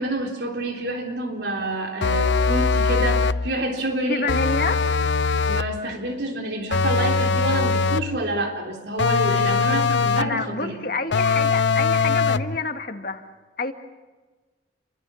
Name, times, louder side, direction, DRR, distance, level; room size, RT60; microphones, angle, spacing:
voice 1, 0.0-4.3 5.5-10.8, right 1 dB, 65° right, 2 dB, 3.6 m, -28 dB
sound 1, 2.0-3.5 4.3-5.8 6.7-8.2 9.0-10.4 11.1-12.6, left 4 dB, 70° left, 0.7 m, -21 dB
voice 2, 4.1-4.8 10.2-13.2 13.6-13.7, left 3 dB, 50° left, 6 dB, 2.0 m, -28 dB
30.0 x 24.0 x 7.1 m, 1.3 s
head